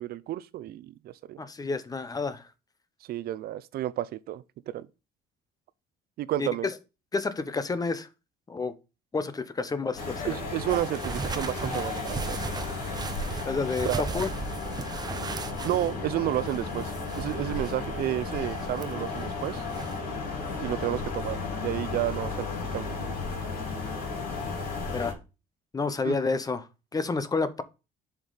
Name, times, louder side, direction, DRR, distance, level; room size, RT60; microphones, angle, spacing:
voice 1, 0.0-1.4 3.1-4.9 6.2-6.7 10.3-12.4 13.8-14.0 15.6-19.7 20.6-22.5 22.7-23.2 26.0-26.2, right 13 dB, 65° right, 0.5 m, -31 dB
voice 2, 1.4-2.5 6.4-6.7 7.1-8.1 8.5-8.7 9.1-10.3 13.4-14.3 24.9-25.2 25.7-27.6, left 4 dB, 20° left, 0.8 m, -30 dB
sound 1, 9.9-25.1, left 4 dB, 60° left, 3.4 m, -34 dB
sound 2, 10.7-20.0, right 4 dB, 25° right, 0.7 m, -38 dB
7.1 x 5.2 x 4.0 m
cardioid pair, 110°, 17 cm